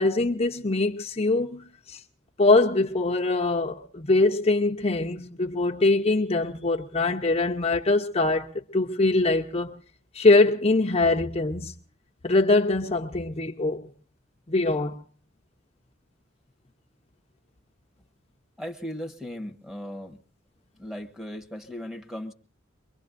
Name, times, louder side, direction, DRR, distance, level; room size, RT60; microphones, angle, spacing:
voice 1, 0.0-2.0 2.4-9.8 10.1-11.7 12.2-13.9 14.5-15.0, left 2 dB, 30° left, 0.8 m, -23 dB
voice 2, 18.6-20.2 20.8-22.3, equal, ahead, 1.3 m, -37 dB
23.5 x 23.0 x 2.6 m
head